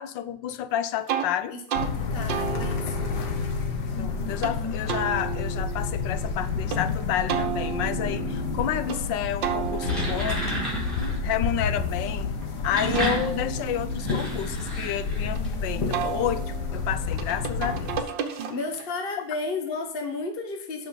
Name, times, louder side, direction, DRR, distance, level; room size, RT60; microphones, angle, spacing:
voice 1, 0.0-1.6 4.0-10.4 11.2-12.3 12.6-18.0, left 10 dB, 85° left, 1.4 m, -30 dB
sound 1, 1.1-1.3 1.7-1.9 2.3-4.5 4.9-6.8 7.3-9.0 9.4-12.3 12.7-15.4 15.9-18.9, right 9 dB, 85° right, 1.7 m, -34 dB
voice 2, 1.5-3.2 18.5-20.9, left 3 dB, 40° left, 1.0 m, -33 dB
sound 2, 1.7-18.0, left 4 dB, 65° left, 1.7 m, -30 dB
sound 3, 9.6-11.2 12.4-15.5, right 1 dB, ahead, 4.4 m, -31 dB
8.1 x 6.1 x 5.6 m
omnidirectional pair, 1.9 m